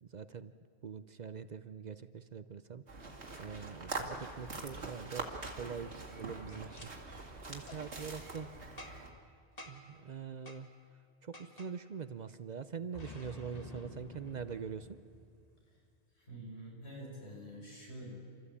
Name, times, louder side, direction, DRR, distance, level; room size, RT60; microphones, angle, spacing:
voice 1, 0.0-0.5 0.8-3.1 3.4-8.5 9.7-10.7 11.2-15.0, right 7 dB, 50° right, 13 dB, 0.6 m, -44 dB
sound 1, 2.9-9.1, right 3 dB, 85° right, 2.4 m, -44 dB
Boom, 6.7-6.9 7.6-7.8 8.8-9.2 9.6-9.9 10.5-10.6 11.3-11.7 12.9-15.6, left 2 dB, 35° left, 1.7 m, -50 dB
voice 2, 16.2-18.1, right 1 dB, 75° left, -2 dB, 5.3 m, -47 dB
30.0 x 13.5 x 8.4 m, 2.3 s
omnidirectional pair, 1.1 m